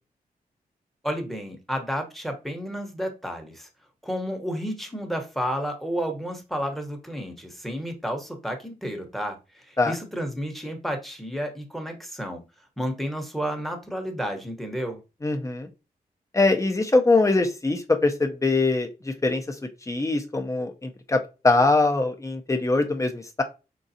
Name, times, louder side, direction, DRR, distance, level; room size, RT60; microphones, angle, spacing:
voice 1, 1.0-3.7 4.0-12.4 12.8-15.0, equal, ahead, 1.0 m, -31 dB
voice 2, 15.2-15.7 16.3-19.5 19.9-21.2 21.4-23.4, left 3 dB, 20° left, 0.7 m, -22 dB
4.8 x 3.9 x 2.7 m
wide cardioid pair, 110°, 16 cm